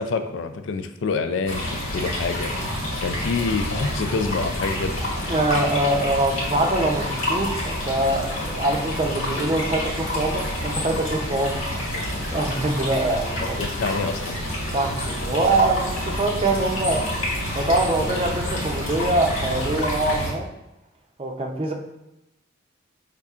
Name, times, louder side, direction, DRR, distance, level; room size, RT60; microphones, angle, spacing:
voice 1, 0.0-2.5 3.0-5.0 13.4-14.4, left 4 dB, 65° left, 8 dB, 0.3 m, -27 dB
sound 1, 1.5-20.3, left 1 dB, 85° left, 1.5 m, -28 dB
voice 2, 5.3-13.6 14.7-17.1 17.5-20.5 21.2-21.7, right 2 dB, 30° right, 2 dB, 0.5 m, -24 dB
5.5 x 3.6 x 2.4 m, 0.91 s
head